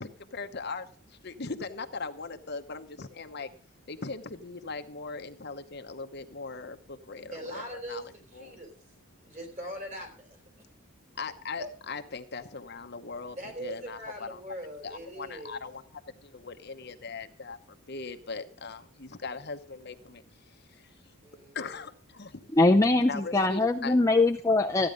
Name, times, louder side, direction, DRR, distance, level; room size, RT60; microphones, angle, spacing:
voice 1, 0.0-3.5 3.9-8.6 11.2-14.4 14.8-15.8 16.2-20.9 21.5-22.5 23.1-23.9, left 4 dB, 50° left, 7 dB, 0.9 m, -40 dB
voice 2, 7.3-8.8 9.2-10.4 11.6-11.7 13.4-15.6 21.2-21.9, equal, 35° right, 3 dB, 4.1 m, -41 dB
voice 3, 22.6-24.9, left 2 dB, 15° left, 3 dB, 0.5 m, -22 dB
14.5 x 9.7 x 5.2 m, 0.40 s
head